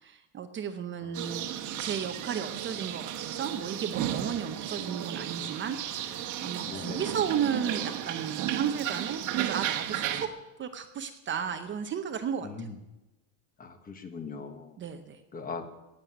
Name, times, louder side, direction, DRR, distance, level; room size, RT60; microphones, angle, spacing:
voice 1, 0.0-1.5 1.8-10.3 10.6-12.7 14.8-15.2, right 8 dB, 25° right, 7 dB, 0.8 m, -34 dB
sound 1, 1.1-10.3, right 11 dB, 45° right, 1.3 m, -34 dB
voice 2, 6.7-7.0 12.4-12.8 13.6-14.7 15.3-15.7, left 4 dB, 20° left, 9 dB, 1.2 m, -40 dB
18.5 x 7.7 x 9.7 m, 0.99 s
cardioid pair, 175°, 43 cm